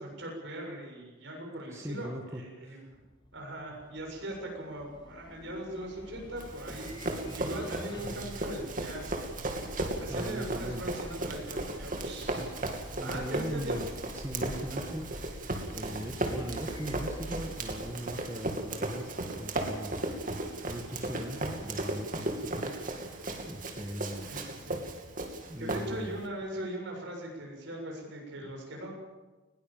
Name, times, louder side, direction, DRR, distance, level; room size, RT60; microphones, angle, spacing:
voice 1, 0.0-3.0 3.3-9.2 9.8-12.5 13.0-13.8 14.7-14.9 21.2-21.5 24.2-24.8 25.6-29.0, right 1 dB, 65° right, 0 dB, 7.1 m, -40 dB
voice 2, 1.7-2.9 10.1-10.8 12.3-12.5 12.9-13.9 14.1-20.0 20.7-22.7 23.0-24.3 25.5-26.1 28.4-28.5, equal, 15° right, 2 dB, 1.7 m, -40 dB
sound 1, 2.9-18.9, equal, 25° left, 2.0 m, -46 dB
Run, 6.4-26.2, right 2 dB, 45° right, 2.7 m, -36 dB
20.5 x 18.5 x 7.3 m, 1.2 s
head